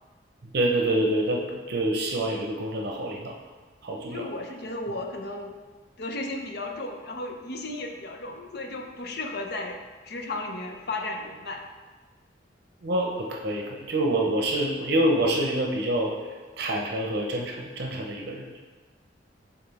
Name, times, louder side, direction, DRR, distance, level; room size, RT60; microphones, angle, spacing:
voice 1, 0.5-1.4 1.7-3.3 3.8-4.3 12.8-16.1 16.6-18.6, right 1 dB, 60° right, 1 dB, 0.7 m, -26 dB
voice 2, 4.1-5.6 6.0-9.8 10.0-11.6, left 2 dB, 60° left, 3 dB, 0.7 m, -34 dB
6.8 x 3.6 x 4.1 m, 1.3 s
head